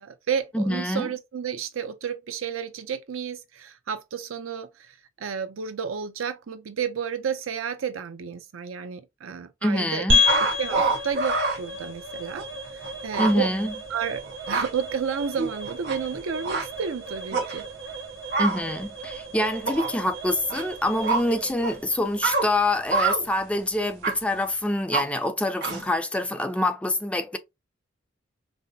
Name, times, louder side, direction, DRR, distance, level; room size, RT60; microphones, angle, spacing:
voice 1, 0.0-10.1 10.6-13.5 13.9-17.7, right 7 dB, 90° right, 0.5 m, -31 dB
voice 2, 0.5-1.1 9.6-10.2 13.2-13.7 18.4-27.4, left 1 dB, 5° left, 0.4 m, -26 dB
sound 1, 10.1-24.7, left 3 dB, 70° right, 1.4 m, -32 dB
sound 2, 10.3-11.6 12.3-12.4 12.8-12.9 13.1-13.3 14.2-14.7 15.4-16.2 16.4-16.7 17.3-17.6 18.3-18.6 19.6-19.9 20.5-20.6 21.0-21.2 21.6-21.7 22.2-22.5 22.9-23.2 24.0-24.1 24.9-25.0 25.6-25.9, right 3 dB, 55° right, 1.1 m, -25 dB
5.4 x 2.0 x 2.7 m
head